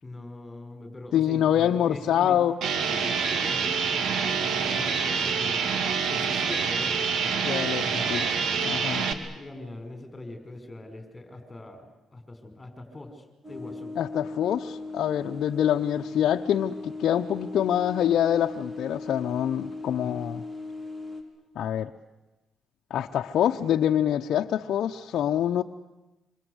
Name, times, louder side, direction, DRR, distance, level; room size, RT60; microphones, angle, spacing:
voice 1, 0.0-2.4 2.7-7.4 7.8-8.4 8.8-13.9 19.9-20.3, left 2 dB, 20° left, 7 dB, 5.6 m, -42 dB
voice 2, 1.1-2.6 7.5-7.8 8.1-8.2 8.6-9.0 14.0-20.4 21.5-21.9 22.9-25.6, left 10 dB, 70° left, 2 dB, 1.0 m, -25 dB
sound 1, 2.6-9.1, right 6 dB, 70° right, 2.7 m, -26 dB
sound 2, 13.4-21.2, left 3 dB, 10° right, 5.2 m, -38 dB
26.5 x 26.0 x 8.2 m, 1.1 s
cardioid pair, 90°, 0 cm